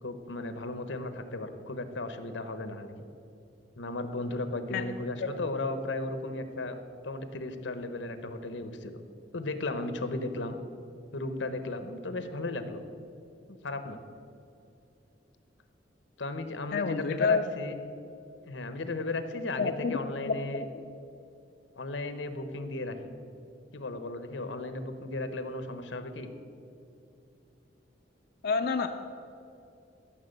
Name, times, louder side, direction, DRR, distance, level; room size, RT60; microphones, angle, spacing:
voice 1, 0.0-2.9 3.8-6.8 7.0-9.0 9.3-10.6 11.1-12.8 13.6-14.0 16.2-17.8 18.4-20.6 21.8-23.1 23.7-26.3, left 2 dB, 85° left, 9 dB, 1.0 m, -35 dB
voice 2, 16.7-17.5 19.6-20.0 20.3-20.7 28.4-28.9, left 5 dB, 60° left, 5 dB, 0.5 m, -28 dB
13.5 x 6.0 x 7.9 m, 2.7 s
head